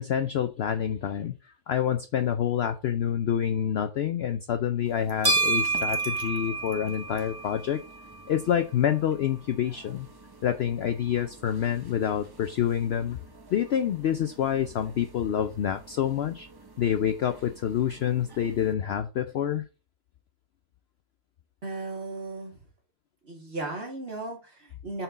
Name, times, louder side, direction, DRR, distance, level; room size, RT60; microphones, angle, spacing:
voice 1, 0.0-1.4 1.7-7.8 8.3-10.1 10.4-13.2 13.5-16.5 16.8-19.6, left 9 dB, 65° left, 0.6 m, -27 dB
sound 1, 4.9-18.7, right 2 dB, 20° right, 0.6 m, -35 dB
voice 2, 21.6-22.5 23.2-25.0, right 2 dB, 45° right, 2.3 m, -36 dB
7.8 x 4.4 x 3.9 m
omnidirectional pair, 1.5 m